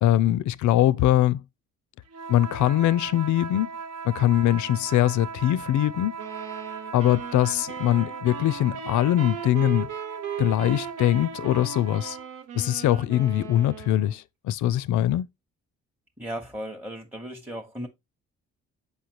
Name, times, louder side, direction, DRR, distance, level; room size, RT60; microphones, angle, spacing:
voice 1, 0.0-1.4 2.3-3.7 4.0-6.1 6.9-9.9 10.4-12.2 12.5-15.3, left 13 dB, 75° left, 0.5 m, -22 dB
sound 1, 2.1-12.3, right 5 dB, 55° right, 0.7 m, -38 dB
sound 2, 6.2-14.2, right 8 dB, 85° right, 0.9 m, -38 dB
voice 2, 16.2-17.9, equal, 5° right, 0.9 m, -36 dB
6.4 x 5.5 x 2.9 m
cardioid pair, 90°, 30 cm